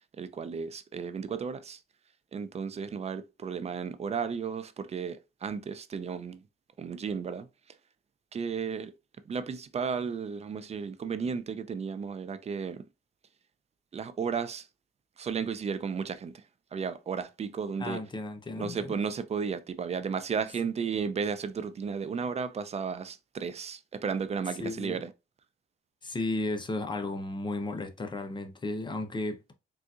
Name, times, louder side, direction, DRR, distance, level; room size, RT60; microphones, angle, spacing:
voice 1, 0.2-1.8 2.3-6.4 6.8-7.5 8.3-8.9 9.3-12.8 13.9-14.7 15.2-16.4 16.7-18.0 18.6-25.1, right 6 dB, 35° right, 0.4 m, -34 dB
voice 2, 17.8-18.9 24.6-25.0 26.0-29.5, left 2 dB, 25° left, 0.7 m, -34 dB
3.8 x 2.5 x 2.4 m
cardioid pair, 90°, 20 cm